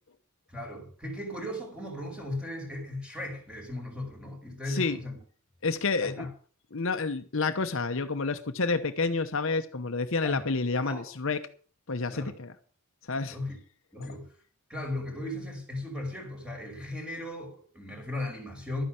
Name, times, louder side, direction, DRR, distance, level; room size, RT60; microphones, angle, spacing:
voice 1, 0.5-5.2 6.0-6.3 10.2-10.5 10.8-11.1 12.1-12.3 13.3-13.6 13.9-14.3 14.7-18.8, left 1 dB, 5° right, 5.3 m, -37 dB
voice 2, 4.7-5.0 5.6-6.3 6.7-11.4 11.9-12.5 13.1-13.4 14.1-14.2, left 4 dB, 60° left, 1.0 m, -29 dB
12.5 x 9.9 x 6.3 m
head